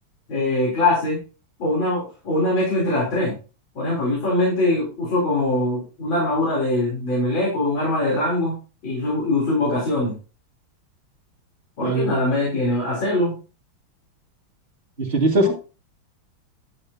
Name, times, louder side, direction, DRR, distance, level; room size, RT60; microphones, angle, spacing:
voice 1, 0.3-1.2 1.6-3.4 3.8-8.6 8.8-10.1 11.8-13.3 15.4-15.5, left 2 dB, 60° left, -5 dB, 4.3 m, -22 dB
voice 2, 11.8-12.2 15.0-15.5, right 1 dB, 30° right, -2 dB, 2.5 m, -20 dB
11.0 x 7.0 x 2.8 m, 0.33 s
omnidirectional pair, 2.4 m